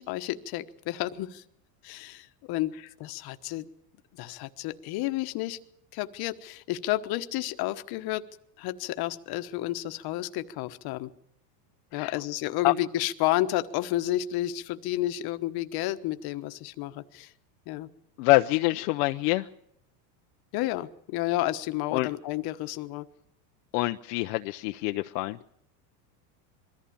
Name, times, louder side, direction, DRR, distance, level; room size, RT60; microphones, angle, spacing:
voice 1, 0.0-1.4 1.8-2.7 3.0-3.7 4.1-5.6 5.9-8.2 8.6-11.1 11.9-17.3 17.7-17.9 20.5-23.1, left 15 dB, 45° left, 10 dB, 1.2 m, -31 dB
voice 2, 18.2-19.5 21.9-22.1 23.7-25.4, left 21 dB, 70° left, 7 dB, 0.8 m, -25 dB
22.0 x 14.5 x 8.6 m, 0.73 s
supercardioid pair, 140°, 50 cm